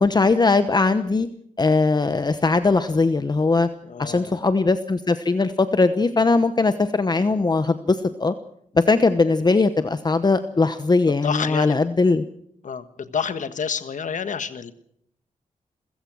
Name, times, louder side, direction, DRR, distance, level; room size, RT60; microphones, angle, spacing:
voice 1, 0.0-1.3 1.6-3.7 4.0-8.3 8.7-12.2, left 3 dB, 30° left, 11 dB, 1.0 m, -20 dB
voice 2, 3.8-4.3 10.5-10.7 11.2-11.9 12.6-14.7, left 6 dB, 70° left, 11 dB, 1.5 m, -29 dB
28.5 x 15.5 x 6.3 m, 0.72 s
cardioid pair, 85°, 13 cm